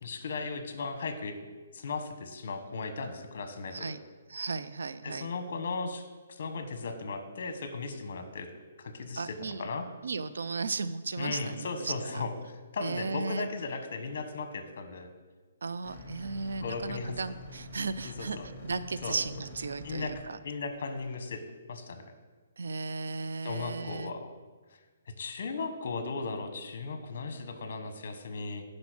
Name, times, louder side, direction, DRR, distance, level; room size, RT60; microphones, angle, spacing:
voice 1, 0.0-1.4 1.7-4.0 5.0-8.5 8.8-9.9 11.2-15.1 16.6-17.1 18.0-18.5 19.0-19.2 19.8-20.1 20.4-21.4 21.7-22.1 23.4-24.3 25.2-28.6, left 4 dB, 55° left, 8 dB, 1.2 m, -36 dB
voice 2, 4.3-5.3 9.2-9.7 10.0-12.3 12.8-13.5 15.6-20.4 22.6-24.1, right 4 dB, 85° right, 13 dB, 0.5 m, -35 dB
sound 1, 15.8-20.2, equal, 30° left, 3.4 m, -46 dB
10.5 x 5.3 x 6.2 m, 1.4 s
hypercardioid pair, 165°, 0 cm